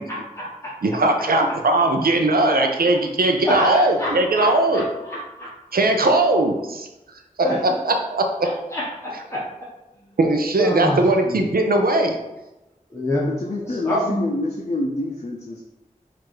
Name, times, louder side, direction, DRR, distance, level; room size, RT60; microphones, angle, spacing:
voice 1, 0.0-0.7 3.4-5.5 7.4-7.6 8.4-9.5 10.6-11.4 12.9-13.3 13.7-14.2, left 1 dB, 20° left, -7 dB, 1.0 m, -27 dB
voice 2, 0.8-4.9 5.7-6.9 7.4-8.5 10.2-12.2, right 2 dB, 85° right, 4 dB, 0.5 m, -19 dB
voice 3, 13.2-15.6, left 2 dB, 50° left, 0 dB, 0.6 m, -27 dB
4.6 x 2.6 x 4.5 m, 0.97 s
wide cardioid pair, 40°, 15 cm